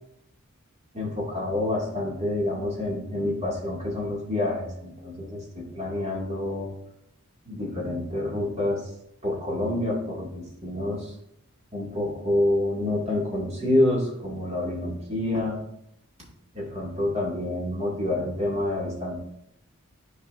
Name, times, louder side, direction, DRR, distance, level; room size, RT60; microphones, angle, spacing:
voice 1, 0.9-6.7 7.4-8.9 9.2-11.1 11.7-15.6 16.5-19.2, left 1 dB, 30° right, -4 dB, 2.2 m, -27 dB
12.5 x 4.7 x 2.6 m, 0.77 s
head